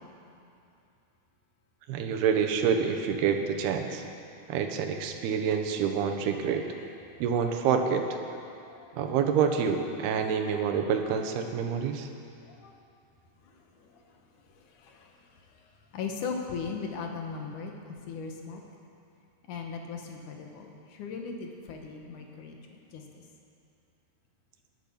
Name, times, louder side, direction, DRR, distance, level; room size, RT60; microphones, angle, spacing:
voice 1, 1.9-4.0 4.5-6.7 7.2-8.2 8.9-12.1, right 7 dB, 80° right, 5 dB, 3.0 m, -27 dB
voice 2, 14.8-15.1 15.9-17.7 18.1-18.6 19.5-22.6 22.9-23.2, left 5 dB, 60° left, 2 dB, 2.6 m, -38 dB
20.0 x 11.0 x 5.9 m, 2.6 s
omnidirectional pair, 4.6 m